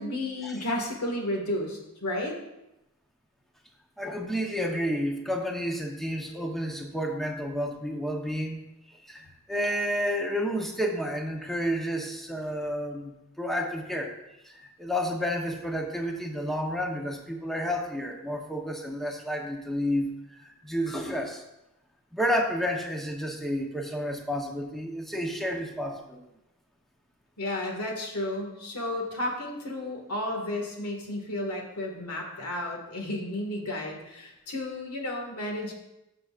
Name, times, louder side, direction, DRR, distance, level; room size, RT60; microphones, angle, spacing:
voice 1, 0.0-2.4 27.4-35.7, left 1 dB, 90° left, 1 dB, 1.9 m, -32 dB
voice 2, 4.0-8.6 8.9-14.1 14.4-21.4 22.1-26.2, equal, ahead, 1 dB, 0.9 m, -31 dB
14.0 x 6.8 x 2.5 m, 0.90 s
head